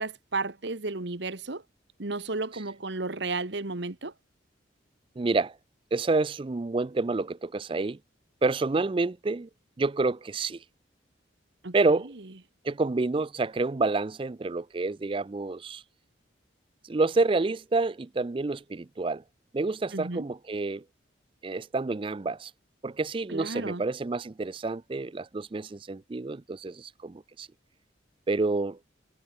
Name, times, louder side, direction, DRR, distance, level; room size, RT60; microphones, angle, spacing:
voice 1, 0.0-1.6 2.0-4.1 11.6-12.0 19.9-20.2 23.3-23.8, right 3 dB, 65° right, 1.4 m, -33 dB
voice 2, 5.2-5.5 5.9-8.0 8.4-9.5 9.8-10.6 11.7-12.1 12.6-15.8 16.9-19.2 19.5-20.8 21.4-22.5 22.8-27.5 28.3-28.8, right 3 dB, 25° right, 0.4 m, -28 dB
head